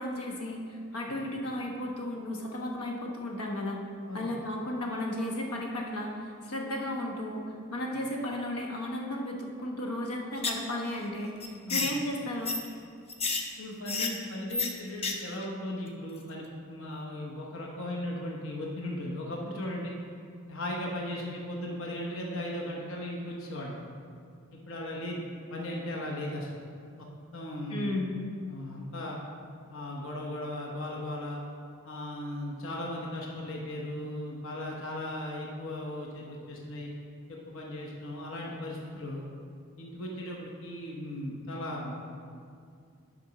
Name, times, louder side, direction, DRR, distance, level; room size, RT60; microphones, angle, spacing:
voice 1, 0.0-3.8 4.1-7.4 7.7-11.3 11.7-12.6 27.7-28.1, left 1 dB, 85° left, 0 dB, 1.0 m, -34 dB
sound 1, 10.4-10.7 10.9-11.0 11.4-11.9 12.4-12.6 13.1-13.4 13.9-14.1 14.5-14.7 15.0-15.1 15.4-15.5, left 4 dB, 25° left, 0.5 m, -30 dB
voice 2, 13.6-19.9 20.5-23.8 24.5-25.2 25.5-26.5 27.0-27.1 27.3-28.0 28.5-29.2 29.7-31.4 31.8-36.9 37.3-39.2 39.8-41.9, left 1 dB, 60° left, -2 dB, 0.9 m, -37 dB
6.8 x 5.1 x 5.8 m, 2.3 s
head